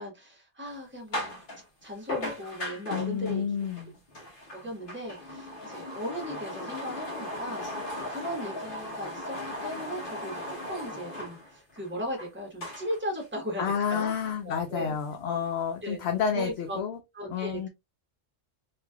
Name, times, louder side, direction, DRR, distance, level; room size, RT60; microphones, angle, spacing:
voice 1, 0.0-1.3 1.8-3.4 4.5-13.6 13.9-14.1 14.4-15.0 15.8-16.0 16.3-16.8 17.1-17.7, equal, 10° right, 1.0 m, -37 dB
sound 1, 0.7-0.8 1.1-1.6 2.1-12.3 12.6-13.2 13.9-14.0 14.5-14.6 14.9-15.6, left 1 dB, 45° left, 1.2 m, -38 dB
voice 2, 2.9-3.9 13.6-17.0 17.3-17.7, left 7 dB, 65° left, 0.8 m, -30 dB
3.1 x 2.9 x 2.2 m
omnidirectional pair, 1.3 m